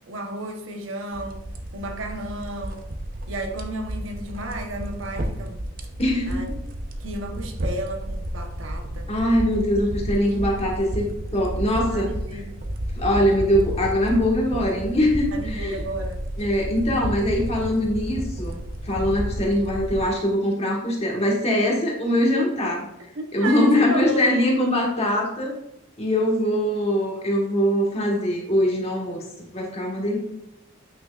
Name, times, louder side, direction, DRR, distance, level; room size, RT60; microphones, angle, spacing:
voice 1, 0.1-1.4 1.7-2.8 3.3-5.6 6.3-6.5 7.0-9.1 11.9-12.6 15.3-16.2 23.1-24.2, right 1 dB, 65° right, 4 dB, 1.0 m, -33 dB
sound 1, 1.1-20.1, equal, 45° right, 0.7 m, -32 dB
voice 2, 6.0-6.5 9.1-11.1 11.3-12.1 12.9-15.8 16.4-18.6 18.8-22.9 23.3-25.6 26.0-30.2, left 1 dB, 30° left, -1 dB, 1.5 m, -22 dB
8.9 x 6.0 x 2.5 m, 0.87 s
head